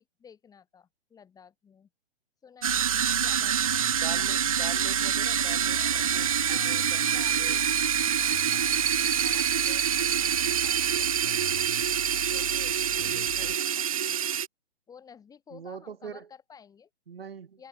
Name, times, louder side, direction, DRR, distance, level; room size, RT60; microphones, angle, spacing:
voice 1, 0.0-1.9 2.4-3.9 6.3-7.6 8.0-11.5 12.3-14.3 14.9-16.9 17.6-17.7, left 7 dB, 10° left, 6.6 m, -53 dB
sound 1, 2.6-14.5, right 9 dB, 35° right, 0.4 m, -26 dB
sound 2, 2.7-13.6, left 7 dB, 60° left, 3.3 m, -42 dB
voice 2, 3.9-7.6 13.0-13.6 15.5-16.3 17.1-17.6, right 7 dB, 60° right, 6.1 m, -43 dB
Water / Liquid, 4.9-10.5, left 4 dB, 75° left, 6.0 m, -51 dB
figure-of-eight pair, 130°, 33 cm